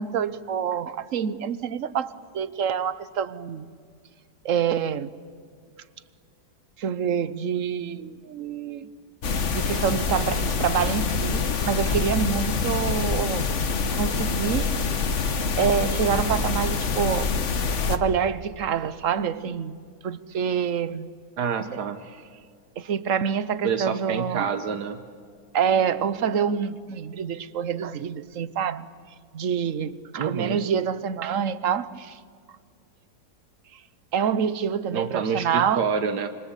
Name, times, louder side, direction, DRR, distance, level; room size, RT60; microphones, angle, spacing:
voice 1, 0.0-3.7 4.4-5.1 6.8-8.9 9.5-14.7 15.6-17.3 17.9-19.8 20.0-21.1 21.6-21.8 22.8-24.5 25.5-28.9 29.3-32.2 34.1-35.8, right 7 dB, 55° right, 1.2 m, -27 dB
sound 1, 9.2-18.0, left 4 dB, 50° left, 1.5 m, -25 dB
voice 2, 21.4-22.0 23.6-25.0 30.2-30.6 34.9-36.3, right 6 dB, 80° right, 1.7 m, -27 dB
27.0 x 26.0 x 8.3 m
omnidirectional pair, 1.7 m